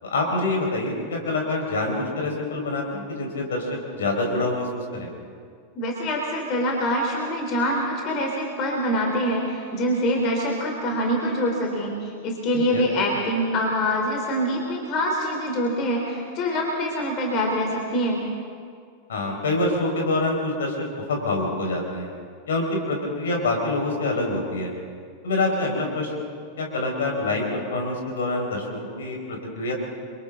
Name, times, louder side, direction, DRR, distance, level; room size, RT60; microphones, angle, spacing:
voice 1, 0.0-5.1 12.7-12.8 19.1-22.1 22.5-24.7 25.2-26.1 26.6-29.7, left 2 dB, 65° left, 1 dB, 5.3 m, -26 dB
voice 2, 5.8-18.2, equal, 35° left, 0 dB, 3.9 m, -25 dB
30.0 x 24.5 x 3.9 m, 2.1 s
figure-of-eight pair, 90°, 0 cm